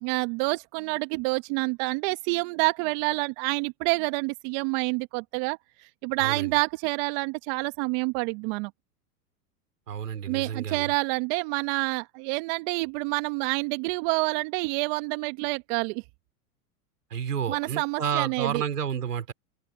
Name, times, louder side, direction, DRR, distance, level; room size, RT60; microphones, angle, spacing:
voice 1, 0.0-5.6 6.0-8.7 10.3-16.0 17.5-18.6, right 27 dB, 50° right, 1.6 m, -28 dB
voice 2, 6.2-6.5 9.9-10.9 17.1-19.3, right 8 dB, 90° right, 4.4 m, -30 dB
open air
hypercardioid pair, 110°, 45 cm